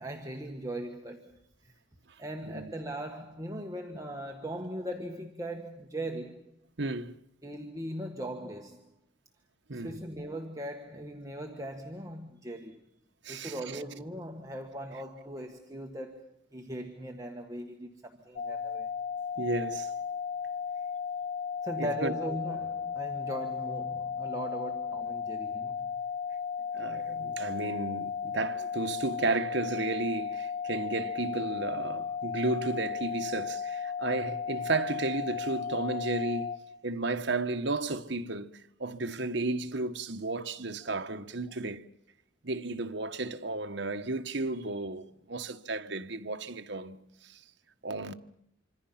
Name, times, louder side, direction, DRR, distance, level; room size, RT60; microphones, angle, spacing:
voice 1, 0.0-1.7 2.2-6.5 7.4-8.9 9.7-12.8 13.3-18.9 21.6-25.9, right 1 dB, 15° right, 1.5 m, -39 dB
voice 2, 6.8-7.2 9.7-10.0 13.2-13.8 19.4-19.9 21.8-22.1 26.7-36.6 36.8-41.8 42.4-47.0 47.2-47.4 47.8-48.1, right 3 dB, 60° right, 1.2 m, -33 dB
sound 1, 18.4-36.6, left 6 dB, 50° left, 1.4 m, -35 dB
26.0 x 25.5 x 5.8 m
head